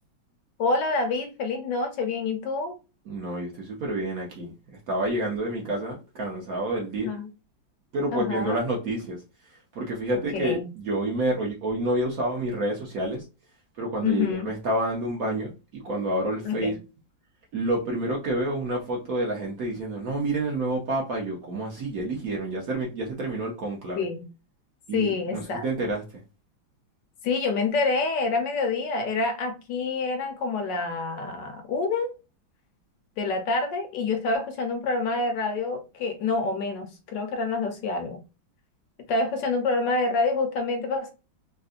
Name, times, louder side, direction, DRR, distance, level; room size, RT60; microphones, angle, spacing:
voice 1, 0.6-2.8 7.0-7.3 8.1-8.6 10.3-10.7 14.0-14.5 16.4-16.8 24.0-24.2 24.9-25.6 27.2-32.1 33.2-38.2 39.1-41.1, left 3 dB, 70° left, 1.3 m, -27 dB
voice 2, 3.1-4.5 4.9-7.1 7.9-9.2 9.7-13.2 13.8-16.8 17.5-24.1 24.9-26.0, right 1 dB, 60° right, 1.0 m, -28 dB
3.6 x 2.6 x 2.4 m
omnidirectional pair, 2.1 m